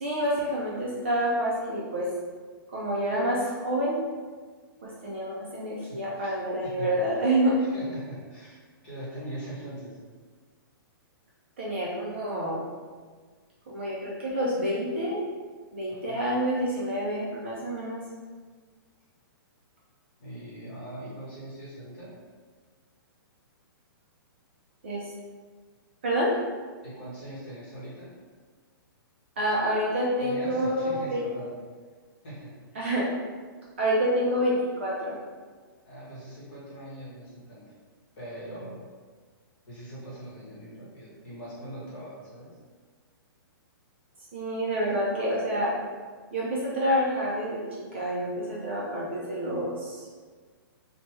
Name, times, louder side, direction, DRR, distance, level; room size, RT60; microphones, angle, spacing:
voice 1, 0.0-2.1 2.7-4.0 4.8-7.6 11.6-12.6 13.7-15.2 15.7-18.0 24.8-25.1 26.0-26.3 29.4-31.3 32.8-33.1 33.8-35.1 44.3-45.7 46.3-47.6 47.9-50.1, equal, 30° right, -5 dB, 0.3 m, -28 dB
voice 2, 5.8-6.3 6.6-6.9 7.6-8.6 8.8-10.0 15.9-16.2 20.2-22.1 26.8-28.1 30.2-31.5 32.2-32.5 35.8-37.7 38.2-38.8 39.7-42.5, right 1 dB, 25° left, -8 dB, 1.0 m, -41 dB
3.1 x 2.1 x 3.0 m, 1.5 s
hypercardioid pair, 180°, 12 cm